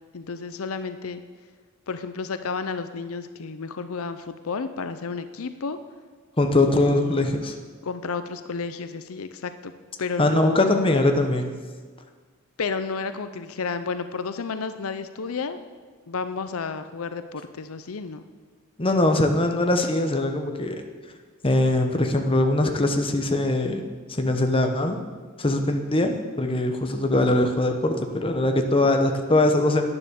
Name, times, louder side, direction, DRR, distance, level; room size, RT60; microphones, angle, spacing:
voice 1, 0.1-1.2 1.9-5.8 6.6-7.2 7.8-9.7 10.0-10.9 12.6-15.6 16.1-18.2, left 4 dB, 80° left, 10 dB, 0.6 m, -31 dB
voice 2, 6.4-7.5 10.2-11.5 18.8-20.8 21.4-25.0 25.4-29.8, left 1 dB, 25° left, 5 dB, 1.0 m, -22 dB
11.0 x 9.8 x 7.0 m, 1.5 s
head